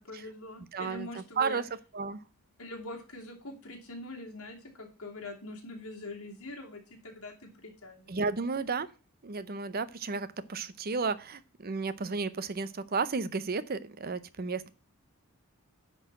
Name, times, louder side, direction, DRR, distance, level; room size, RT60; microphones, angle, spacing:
voice 1, 0.0-1.6 2.6-8.1, left 2 dB, 75° left, 0 dB, 2.7 m, -43 dB
voice 2, 0.7-1.6 1.9-2.2 8.1-8.9 9.2-14.7, right 4 dB, 45° right, 15 dB, 0.6 m, -33 dB
10.0 x 4.0 x 7.5 m, 0.33 s
head